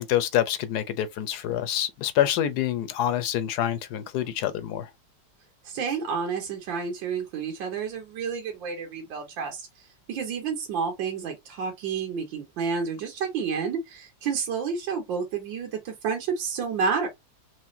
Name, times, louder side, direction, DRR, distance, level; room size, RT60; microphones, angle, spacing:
voice 1, 0.0-4.9, left 11 dB, 70° left, 1.0 m, -26 dB
voice 2, 5.7-9.6 10.1-17.1, right 6 dB, 80° right, 1.8 m, -30 dB
4.7 x 3.2 x 2.5 m
omnidirectional pair, 2.1 m